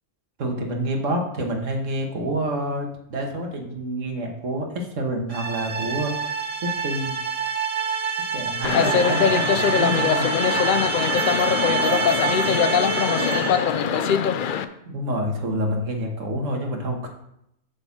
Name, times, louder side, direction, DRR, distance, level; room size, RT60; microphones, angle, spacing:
voice 1, 0.4-6.1 6.6-7.1 8.3-10.3 14.9-17.1, right 1 dB, 75° right, 2 dB, 1.7 m, -27 dB
sound 1, 5.3-13.7, right 6 dB, 30° right, 0.9 m, -27 dB
sound 2, 8.6-14.6, left 7 dB, 60° left, 0.5 m, -22 dB
voice 2, 11.3-14.2, left 1 dB, 20° left, -2 dB, 1.5 m, -33 dB
8.0 x 4.2 x 7.1 m, 0.78 s
omnidirectional pair, 1.3 m